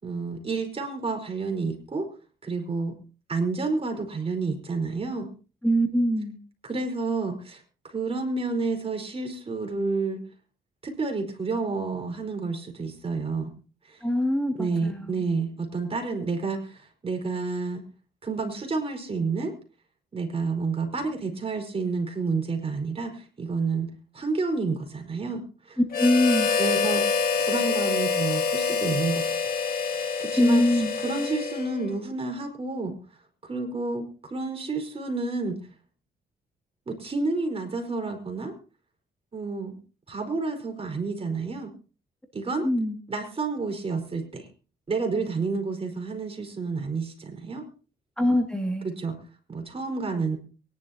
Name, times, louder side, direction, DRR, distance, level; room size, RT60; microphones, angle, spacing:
voice 1, 0.0-2.1 2.4-2.9 3.3-5.3 6.6-10.2 10.8-13.5 13.8-14.0 14.6-17.8 18.2-19.5 20.1-25.8 26.6-27.0 27.4-29.6 29.9-33.0 33.4-35.6 36.9-38.5 39.3-39.8 40.1-41.7 42.3-42.7 43.1-44.5 44.9-47.6 48.8-49.2 49.5-50.4, right 4 dB, 35° right, 4 dB, 4.6 m, -30 dB
voice 2, 5.6-6.4 14.0-15.2 26.0-26.5 30.4-30.9 42.6-43.0 48.2-48.9, left 1 dB, 5° left, 3 dB, 2.3 m, -23 dB
Harmonica, 25.9-31.9, left 5 dB, 60° left, 2.5 m, -26 dB
23.5 x 11.5 x 2.9 m, 0.36 s
cardioid pair, 80°, 17 cm